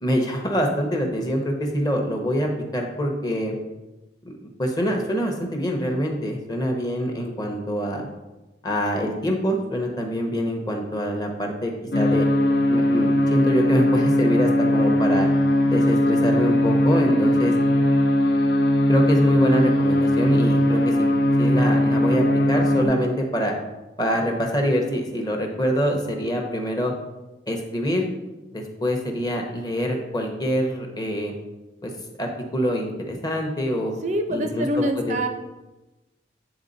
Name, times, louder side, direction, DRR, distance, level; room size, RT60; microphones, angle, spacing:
voice 1, 0.0-3.6 4.2-8.1 8.6-12.3 12.7-15.3 15.6-17.5 18.9-21.1 21.4-23.6 24.0-26.9 27.5-28.1 28.5-31.3 31.8-31.9 32.2-33.9 34.3-35.2, equal, 20° left, 2 dB, 0.8 m, -25 dB
sound 1, 11.9-22.9, left 1 dB, 60° left, 0.6 m, -19 dB
voice 2, 17.0-17.4 34.0-35.3, right 1 dB, 40° right, 5 dB, 0.4 m, -25 dB
8.9 x 3.5 x 4.0 m, 1.1 s
head